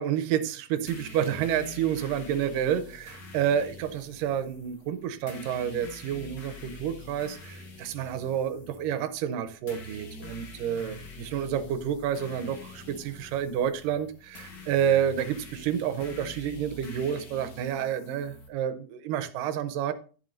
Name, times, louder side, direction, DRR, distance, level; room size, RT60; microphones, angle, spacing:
voice 1, 0.0-19.9, right 9 dB, 80° right, 10 dB, 2.3 m, -29 dB
sound 1, 0.9-18.5, left 2 dB, 50° left, 1.3 m, -46 dB
11.0 x 7.4 x 2.6 m, 0.38 s
omnidirectional pair, 4.0 m